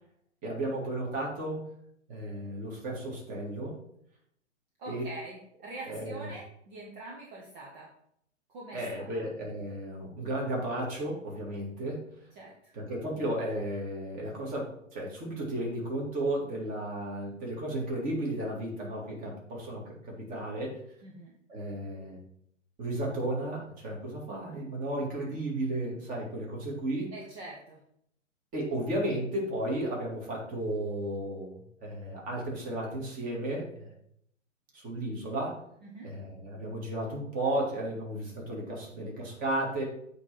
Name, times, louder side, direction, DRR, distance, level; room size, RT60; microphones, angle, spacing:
voice 1, 0.4-1.7 2.1-3.8 4.9-5.1 5.8-6.3 8.7-12.0 12.7-20.8 21.5-22.2 22.8-27.1 28.5-33.9 34.7-35.6 36.0-39.8, right 1 dB, 20° right, -2 dB, 2.3 m, -34 dB
voice 2, 4.8-7.9 8.5-9.2 12.4-12.7 21.0-21.3 27.1-27.8 35.8-36.1, right 2 dB, 40° right, -3 dB, 1.5 m, -44 dB
8.1 x 3.5 x 5.9 m, 0.72 s
figure-of-eight pair, 125°, 37 cm